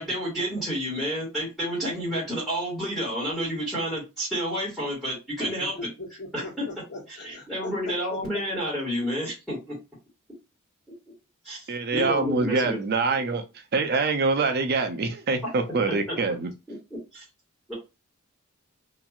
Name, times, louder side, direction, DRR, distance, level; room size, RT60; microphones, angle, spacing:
voice 1, 0.0-5.7 6.3-6.6 7.2-9.7 11.4-11.6 11.9-12.8 16.1-16.2 17.1-17.2 17.7-17.8, equal, ahead, 1.5 m, -30 dB
voice 2, 5.4-8.4 11.9-12.5, left 3 dB, 55° left, 1.5 m, -40 dB
voice 3, 11.7-13.4 13.7-16.5, right 4 dB, 50° right, 0.5 m, -25 dB
3.0 x 2.6 x 2.4 m
head